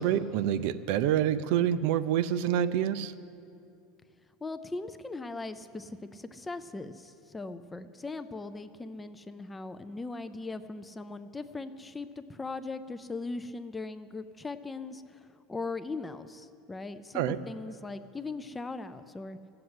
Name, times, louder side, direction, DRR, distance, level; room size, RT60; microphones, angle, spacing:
voice 1, 0.0-3.1 17.1-17.4, right 10 dB, 55° right, 14 dB, 0.5 m, -27 dB
voice 2, 4.4-19.4, left 3 dB, 10° left, 11 dB, 0.4 m, -39 dB
15.5 x 7.7 x 9.6 m, 2.5 s
supercardioid pair, 175°, 0 cm